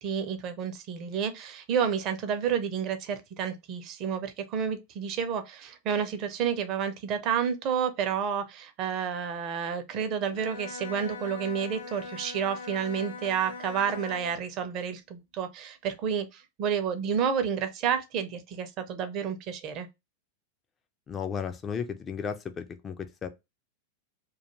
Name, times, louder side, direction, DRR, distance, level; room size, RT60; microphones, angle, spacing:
voice 1, 0.0-19.9, right 7 dB, 40° right, 0.5 m, -30 dB
Bowed string instrument, 10.3-14.5, left 4 dB, 70° left, 0.8 m, -41 dB
voice 2, 21.1-23.3, left 7 dB, 25° left, 0.3 m, -34 dB
2.3 x 2.3 x 2.9 m
figure-of-eight pair, 90°, 0 cm